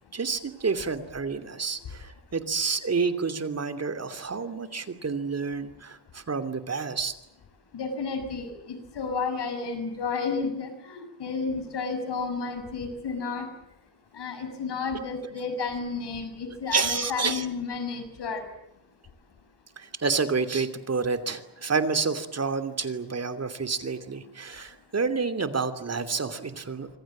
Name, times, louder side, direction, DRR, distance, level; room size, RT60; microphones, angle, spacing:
voice 1, 0.1-7.1 16.7-17.5 19.8-26.9, right 4 dB, 40° right, 10 dB, 2.9 m, -29 dB
voice 2, 7.7-13.5 14.1-18.4, left 4 dB, 80° left, 8 dB, 6.5 m, -32 dB
26.5 x 25.5 x 7.5 m, 0.85 s
wide cardioid pair, 115°, 40 cm